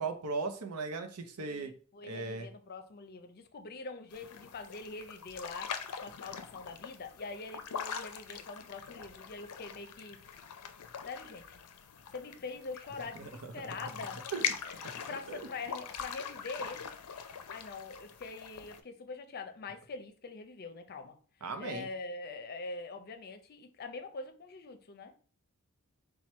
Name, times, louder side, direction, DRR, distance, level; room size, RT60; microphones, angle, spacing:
voice 1, 0.0-1.7 2.1-2.5 13.2-13.3 14.3-14.4 15.3-15.4 21.4-21.9, right 4 dB, 85° right, 0.7 m, -37 dB
voice 2, 1.4-10.2 11.1-11.6 12.1-14.2 14.6-16.9 17.5-21.2 21.6-25.1, left 3 dB, 45° left, 0.5 m, -44 dB
sound 1, 4.1-18.8, left 7 dB, 90° left, 0.5 m, -42 dB
4.4 x 2.3 x 4.3 m
head